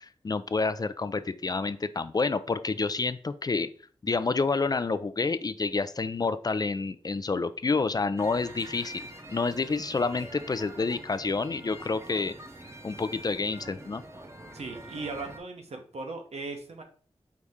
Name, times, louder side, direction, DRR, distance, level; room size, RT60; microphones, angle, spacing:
voice 1, 0.0-3.7 4.0-12.3 12.8-14.0, left 4 dB, 35° left, 13 dB, 0.3 m, -29 dB
sound 1, 8.2-15.4, right 1 dB, 25° right, 0.7 m, -45 dB
voice 2, 14.5-16.8, right 3 dB, 75° right, 3 dB, 0.9 m, -38 dB
4.7 x 2.6 x 3.5 m, 0.43 s
cardioid pair, 50°, 11 cm